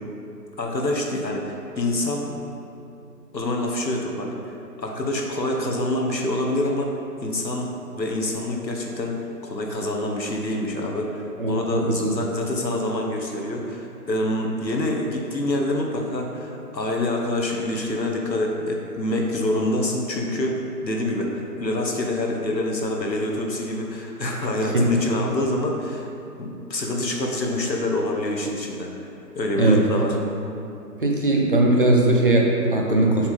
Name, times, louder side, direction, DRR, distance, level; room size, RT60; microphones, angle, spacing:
voice 1, 0.6-2.4 3.3-6.9 7.2-9.2 9.4-26.1 26.4-29.1 29.3-30.1, left 1 dB, 90° left, 0 dB, 1.2 m, -26 dB
voice 2, 11.4-12.0 24.7-24.8 29.6-29.8 31.0-33.3, right 2 dB, 35° right, -1 dB, 0.6 m, -19 dB
7.0 x 3.7 x 5.0 m, 2.8 s
figure-of-eight pair, 140°, 49 cm